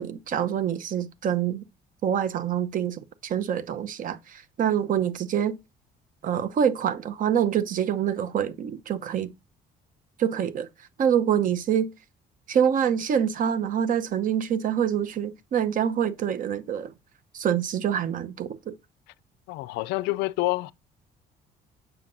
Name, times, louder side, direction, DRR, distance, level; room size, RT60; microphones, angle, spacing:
voice 1, 0.0-1.6 2.0-5.6 6.2-9.3 10.2-10.7 11.0-11.9 12.5-16.9 17.3-18.8, right 8 dB, 55° right, 0.8 m, -26 dB
voice 2, 19.5-20.7, left 20 dB, 90° left, 0.4 m, -27 dB
7.3 x 5.8 x 2.6 m
cardioid pair, 110°, 17 cm